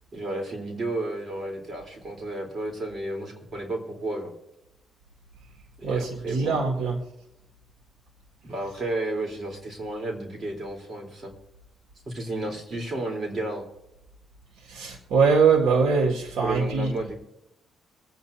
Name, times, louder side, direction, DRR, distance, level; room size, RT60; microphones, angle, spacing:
voice 1, 0.1-4.3 5.8-6.6 8.4-11.3 12.1-13.6 16.4-17.1, right 2 dB, 40° right, 1 dB, 3.6 m, -32 dB
voice 2, 5.8-7.0 14.6-16.9, right 5 dB, 80° right, 2 dB, 1.9 m, -22 dB
25.0 x 9.0 x 2.7 m, 0.88 s
cardioid pair, 90°, 0 cm